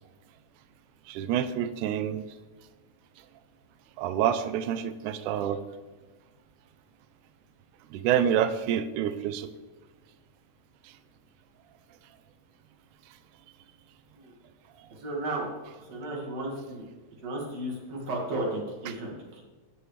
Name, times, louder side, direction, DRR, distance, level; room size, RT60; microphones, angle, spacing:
voice 1, 1.1-2.3 4.0-5.6 7.9-9.5 10.8-11.0 14.8-14.9 18.9-19.0, right 9 dB, 85° right, 12 dB, 2.0 m, -28 dB
voice 2, 15.0-15.5 15.8-16.8 17.2-19.4, right 1 dB, 60° right, -2 dB, 2.8 m, -34 dB
15.5 x 5.5 x 3.2 m, 1.3 s
omnidirectional pair, 3.6 m